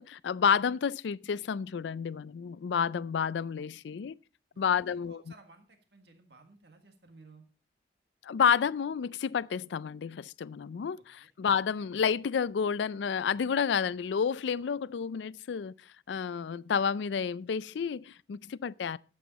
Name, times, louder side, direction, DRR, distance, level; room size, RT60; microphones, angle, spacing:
voice 1, 0.0-4.1 4.6-5.2 8.2-15.7 16.1-19.0, left 7 dB, 80° left, 0.4 m, -30 dB
voice 2, 4.5-7.4 11.0-11.3, right 3 dB, 70° right, 1.6 m, -57 dB
12.0 x 7.9 x 4.1 m
head